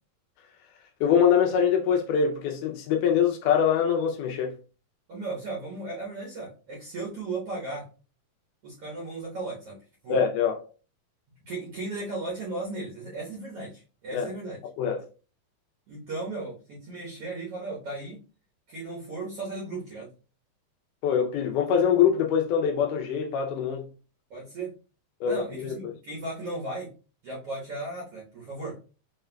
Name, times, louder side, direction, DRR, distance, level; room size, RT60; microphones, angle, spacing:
voice 1, 1.0-4.6 10.1-10.5 14.1-14.3 14.8-15.0 21.0-23.9 25.2-25.8, left 7 dB, 80° left, 1.9 m, -24 dB
voice 2, 5.1-7.9 8.6-10.2 11.5-14.6 15.9-18.2 18.7-20.1 24.3-24.7 25.2-26.9 27.2-28.8, right 2 dB, 60° right, 1.6 m, -36 dB
5.6 x 3.4 x 2.2 m
omnidirectional pair, 4.1 m